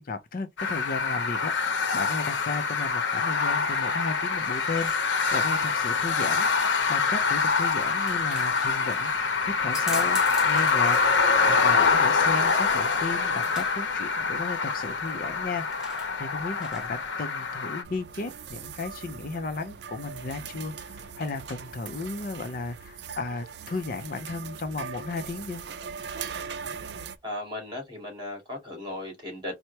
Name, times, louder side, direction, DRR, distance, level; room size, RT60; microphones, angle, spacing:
voice 1, 0.0-9.1 9.4-11.0 11.4-15.9 16.2-25.6, left 3 dB, 50° left, 0.5 m, -34 dB
sound 1, 0.6-17.8, left 5 dB, 75° left, 0.8 m, -25 dB
sound 2, 4.2-17.1, equal, 5° right, 1.0 m, -45 dB
sound 3, 17.8-27.2, right 6 dB, 60° right, 0.4 m, -40 dB
voice 2, 27.2-29.5, left 1 dB, 25° right, 2.3 m, -36 dB
4.5 x 2.1 x 2.7 m
head